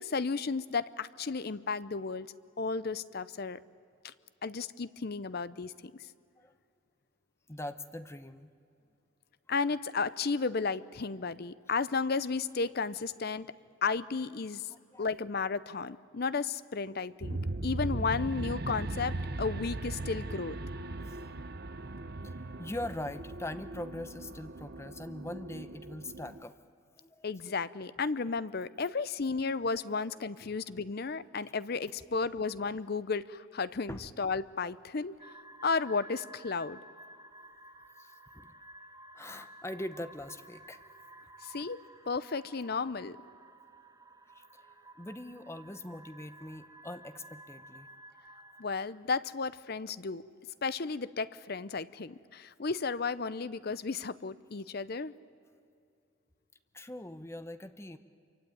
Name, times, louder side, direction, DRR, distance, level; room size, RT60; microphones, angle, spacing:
voice 1, 0.0-2.3 2.6-3.6 4.0-4.1 4.4-5.9 9.5-13.5 13.8-14.7 15.0-17.4 17.6-20.6 27.2-35.1 35.6-36.8 41.4-41.8 42.1-43.2 48.6-50.2 50.6-55.1, left 4 dB, 50° left, 16 dB, 0.6 m, -33 dB
voice 2, 7.5-8.5 14.9-15.1 17.6-17.7 18.7-18.8 21.0-21.4 22.2-26.5 27.0-27.3 33.9-34.0 38.0-38.5 39.1-40.8 44.3-47.9 56.7-58.0, left 1 dB, 15° left, 11 dB, 0.8 m, -42 dB
sound 1, 17.2-26.4, right 2 dB, 50° right, 0.8 m, -38 dB
sound 2, 35.2-48.7, right 1 dB, 20° right, 1.3 m, -53 dB
26.0 x 24.0 x 9.3 m, 2.4 s
head